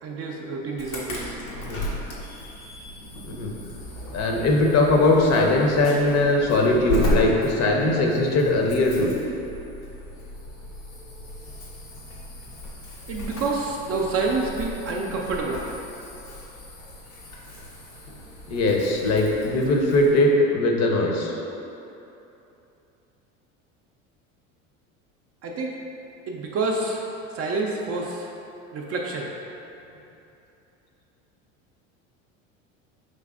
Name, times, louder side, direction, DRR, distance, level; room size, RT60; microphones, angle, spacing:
voice 1, 0.0-1.4 13.1-15.6 25.4-25.8 26.3-28.3 28.7-29.3, right 3 dB, 40° right, -1 dB, 0.5 m, -28 dB
Insect / Alarm, 0.8-20.2, left 1 dB, 85° left, 0.9 m, -35 dB
voice 2, 4.1-9.1 18.5-21.3, left 2 dB, 40° left, 0 dB, 0.7 m, -20 dB
5.1 x 3.2 x 2.4 m, 2.9 s
hypercardioid pair, 80°, 38 cm